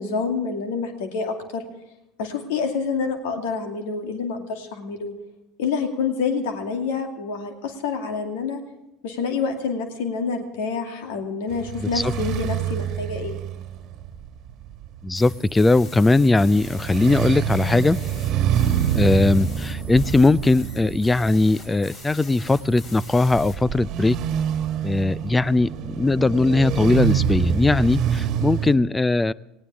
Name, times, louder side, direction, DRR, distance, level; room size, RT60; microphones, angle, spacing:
voice 1, 0.0-1.6 2.2-5.1 5.6-8.6 9.0-13.4, left 5 dB, 65° left, 5 dB, 2.4 m, -27 dB
sound 1, 11.5-28.7, right 9 dB, 50° right, 1.5 m, -27 dB
voice 2, 11.8-12.1 15.0-18.0 18.9-24.2 24.8-29.3, left 2 dB, 15° left, 22 dB, 0.5 m, -19 dB
sound 2, 15.1-23.6, left 3 dB, 45° left, 5.3 m, -44 dB
19.0 x 18.0 x 3.5 m, 0.89 s
figure-of-eight pair, 70°, 0 cm